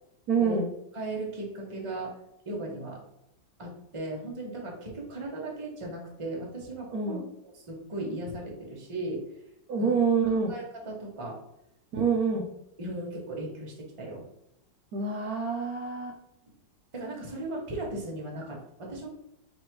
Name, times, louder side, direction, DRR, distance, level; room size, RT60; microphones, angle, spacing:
voice 1, 0.3-0.7 6.9-7.2 9.7-10.5 11.9-12.5 14.9-16.2, right 5 dB, 70° right, 2 dB, 0.9 m, -26 dB
voice 2, 0.9-2.2 2.5-3.0 3.6-7.2 7.5-9.2 9.8-9.9 10.3-11.4 12.3-12.5 12.8-14.2 16.9-19.2, right 2 dB, 40° right, -1 dB, 0.4 m, -37 dB
3.1 x 2.9 x 4.5 m, 0.79 s
omnidirectional pair, 2.0 m